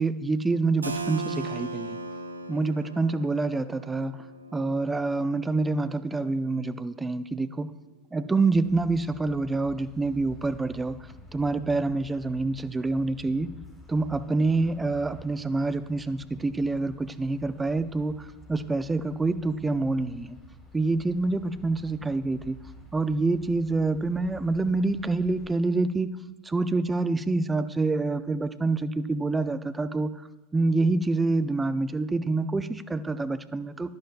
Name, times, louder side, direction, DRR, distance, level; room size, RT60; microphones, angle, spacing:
voice 1, 0.0-2.0 2.5-4.2 4.5-7.7 8.1-11.0 11.3-13.5 13.9-20.4 20.7-22.6 22.9-26.1 26.4-30.1 30.5-33.9, right 3 dB, 15° right, 13 dB, 0.6 m, -27 dB
Keyboard (musical), 0.8-6.4, right 3 dB, 85° right, 0.6 m, -38 dB
sound 1, 8.5-25.5, left 2 dB, 15° left, 4.3 m, -50 dB
15.5 x 11.0 x 2.5 m, 1.1 s
figure-of-eight pair, 80°, 0 cm